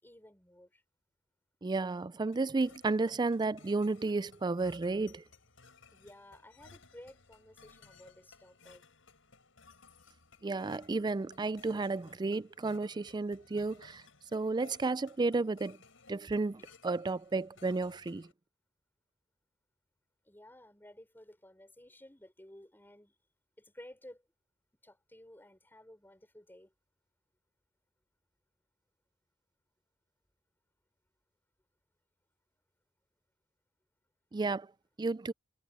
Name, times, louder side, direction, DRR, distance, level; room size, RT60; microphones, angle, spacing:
voice 1, 0.0-0.8 5.9-8.8 20.2-23.1 23.6-24.2 24.8-26.7, left 1 dB, 10° left, 6.1 m, -55 dB
voice 2, 1.6-5.2 10.4-14.0 14.3-15.8 16.1-18.3 34.3-34.7 35.0-35.3, right 3 dB, 20° right, 0.4 m, -32 dB
sound 1, 2.3-18.3, left 4 dB, 75° left, 6.8 m, -60 dB
head